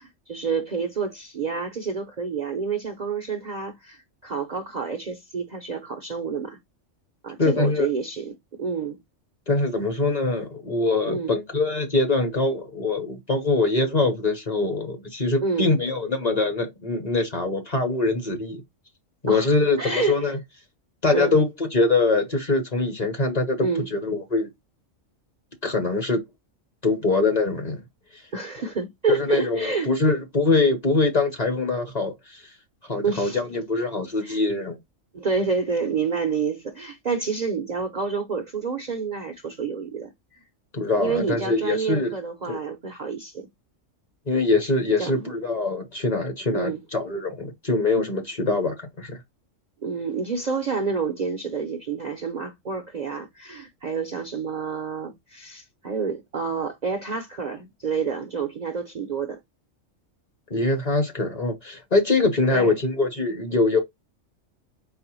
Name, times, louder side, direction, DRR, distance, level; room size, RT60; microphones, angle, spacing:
voice 1, 0.0-6.6 7.2-9.0 11.1-11.3 15.4-15.7 19.3-19.5 19.8-20.3 21.1-21.4 23.6-23.9 28.3-29.9 33.0-33.4 34.2-34.4 35.1-40.4 41.0-43.5 45.0-45.4 46.5-46.8 49.8-59.4 62.5-62.7, right 5 dB, 50° right, 0.6 m, -28 dB
voice 2, 7.4-7.9 9.5-18.6 19.2-20.4 21.0-23.6 23.9-24.5 25.6-26.2 26.8-27.8 29.1-32.4 32.9-34.8 40.7-42.1 42.5-42.6 44.3-49.2 60.5-63.8, left 3 dB, 35° left, 0.9 m, -23 dB
4.1 x 3.2 x 3.0 m
omnidirectional pair, 1.3 m